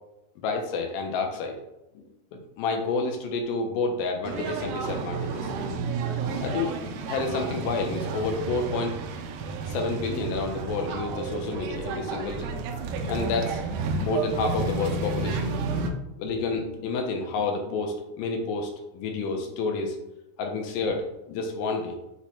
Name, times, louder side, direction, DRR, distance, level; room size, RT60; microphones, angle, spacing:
voice 1, 0.4-1.6 2.0-2.1 2.3-5.5 6.4-6.7 7.1-9.0 9.7-12.5 13.1-13.6 14.0-15.5 16.2-20.0 20.4-22.0, left 3 dB, 80° left, 3 dB, 2.2 m, -29 dB
sound 1, 4.2-15.9, right 4 dB, 90° right, 1.8 m, -31 dB
6.0 x 2.1 x 4.1 m, 0.93 s
omnidirectional pair, 4.2 m